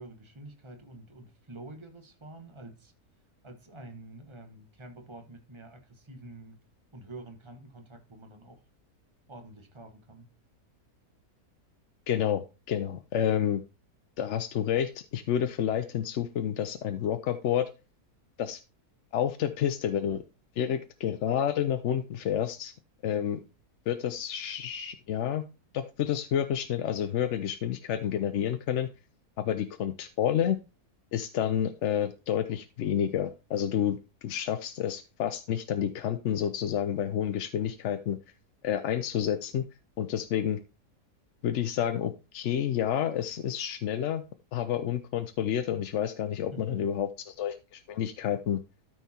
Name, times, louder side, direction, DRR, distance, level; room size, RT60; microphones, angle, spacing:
voice 1, 0.0-2.9 3.4-6.6 6.9-8.6 9.3-10.3 46.5-46.9, right 2 dB, 20° right, 6 dB, 1.3 m, -47 dB
voice 2, 12.1-13.6 14.2-17.7 18.4-18.6 19.1-20.2 20.6-22.7 23.0-23.4 23.9-25.4 25.7-28.9 29.4-30.6 31.1-38.2 38.6-39.6 40.0-40.6 41.4-44.2 44.5-48.6, left 9 dB, 65° left, 9 dB, 0.8 m, -29 dB
13.0 x 4.6 x 4.2 m, 0.30 s
omnidirectional pair, 1.6 m